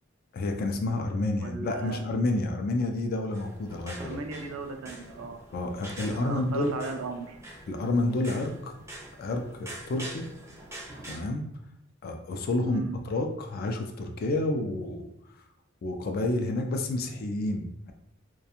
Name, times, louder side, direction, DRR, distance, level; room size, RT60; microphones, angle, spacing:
voice 1, 0.3-4.2 5.5-6.7 7.7-8.7 9.2-10.3 11.1-11.5 12.0-15.0 15.8-17.9, left 2 dB, 50° left, 4 dB, 0.3 m, -29 dB
voice 2, 1.4-2.0 4.0-5.4 6.1-7.4 12.6-13.0, right 4 dB, 80° right, 5 dB, 0.4 m, -37 dB
sound 1, 3.3-11.2, right 1 dB, 15° right, 0.4 m, -44 dB
2.4 x 2.2 x 2.8 m, 0.80 s
head